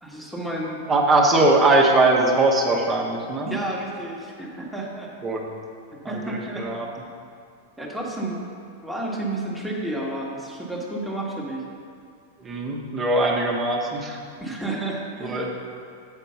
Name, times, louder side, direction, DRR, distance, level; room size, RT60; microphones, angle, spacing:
voice 1, 0.0-0.8 3.4-5.1 6.1-6.7 7.8-8.4 8.8-11.6 14.4-15.6, right 1 dB, ahead, -4 dB, 1.3 m, -31 dB
voice 2, 0.9-3.5 5.2-5.5 6.0-6.9 12.4-14.2 15.2-15.5, right 2 dB, 25° right, -1 dB, 1.1 m, -21 dB
8.3 x 4.5 x 5.5 m, 2.3 s
hypercardioid pair, 130°, 0 cm